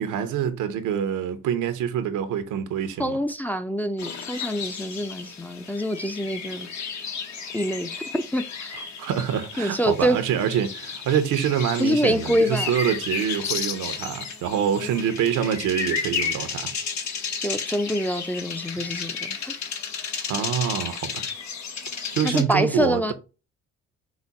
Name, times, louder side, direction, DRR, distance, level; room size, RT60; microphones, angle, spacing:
voice 1, 0.0-3.2 9.0-16.7 20.3-21.2 22.1-23.1, right 9 dB, 85° right, 0.8 m, -26 dB
voice 2, 3.0-6.7 7.5-8.7 9.6-10.2 11.8-12.7 17.4-19.6 22.2-23.1, equal, 5° left, 0.4 m, -25 dB
sound 1, 4.0-22.4, left 6 dB, 65° left, 1.0 m, -33 dB
4.9 x 2.1 x 4.0 m
cardioid pair, 90°, 30 cm